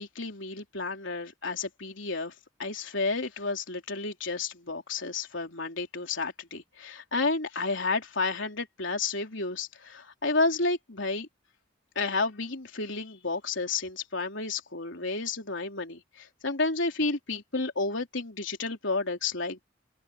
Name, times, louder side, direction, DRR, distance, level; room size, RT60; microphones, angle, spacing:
voice 1, 0.0-2.3 2.6-11.3 12.0-19.6, left 3 dB, 70° left, 3.5 m, -31 dB
open air
head